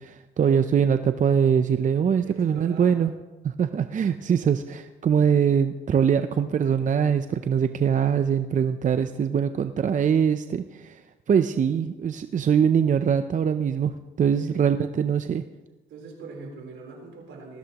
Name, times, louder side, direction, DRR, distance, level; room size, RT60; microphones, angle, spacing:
voice 1, 0.0-3.1 3.4-11.0 11.3-13.9 14.2-15.4, right 7 dB, 40° right, 10 dB, 0.5 m, -23 dB
voice 2, 2.2-3.1 14.3-14.5 15.9-17.6, right 3 dB, 75° right, 1 dB, 3.8 m, -42 dB
20.0 x 15.0 x 3.0 m, 1.1 s
cardioid pair, 90°, 20 cm